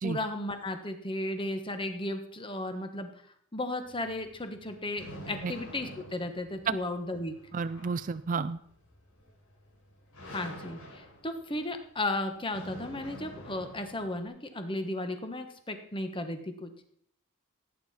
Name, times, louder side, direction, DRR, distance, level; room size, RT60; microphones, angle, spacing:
voice 1, 0.0-3.1 3.5-7.3 10.3-16.7, left 1 dB, 25° left, 7 dB, 1.3 m, -35 dB
sound 1, 3.8-14.3, equal, 90° left, 4.5 m, -48 dB
voice 2, 7.5-8.6, right 5 dB, 40° right, 13 dB, 0.4 m, -31 dB
17.0 x 9.3 x 4.3 m, 0.66 s
head